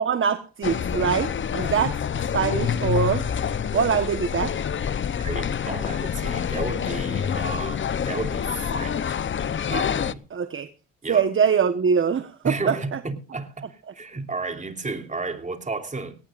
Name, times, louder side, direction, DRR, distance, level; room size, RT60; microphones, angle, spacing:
voice 1, 0.0-2.0 2.3-3.2 3.7-4.6 10.3-10.7 11.1-13.0, right 7 dB, 40° right, 1.3 m, -23 dB
sound 1, 0.6-10.1, left 8 dB, 40° left, 0.8 m, -27 dB
voice 2, 5.2-9.2 9.7-10.2 11.0-11.3 12.4-16.2, right 3 dB, 25° right, 3.2 m, -32 dB
19.0 x 18.5 x 2.6 m
cardioid pair, 90°, 30 cm